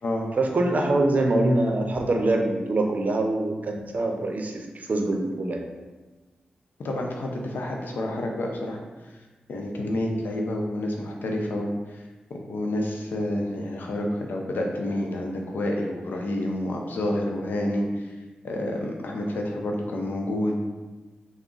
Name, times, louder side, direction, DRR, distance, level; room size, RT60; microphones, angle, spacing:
voice 1, 0.4-5.6, right 2 dB, 55° right, 3 dB, 0.5 m, -24 dB
voice 2, 6.8-8.8 9.5-12.0 12.3-18.1 18.4-20.7, left 1 dB, 75° left, 1 dB, 0.5 m, -29 dB
3.4 x 2.0 x 3.8 m, 1.2 s
cardioid pair, 45°, 3 cm